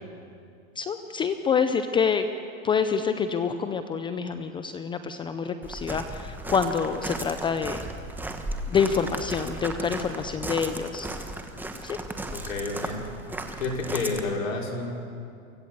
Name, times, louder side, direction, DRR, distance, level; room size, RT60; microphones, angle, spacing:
voice 1, 0.8-2.3 2.6-7.8 8.7-11.1 11.8-12.0, left 6 dB, 10° left, 9 dB, 0.5 m, -27 dB
Walk footsteps, 5.6-14.2, right 1 dB, 5° right, 1.3 m, -35 dB
voice 2, 12.3-13.0 13.6-14.9, left 3 dB, 75° left, -1 dB, 5.4 m, -30 dB
24.5 x 16.0 x 8.1 m, 2.4 s
hypercardioid pair, 135°, 40 cm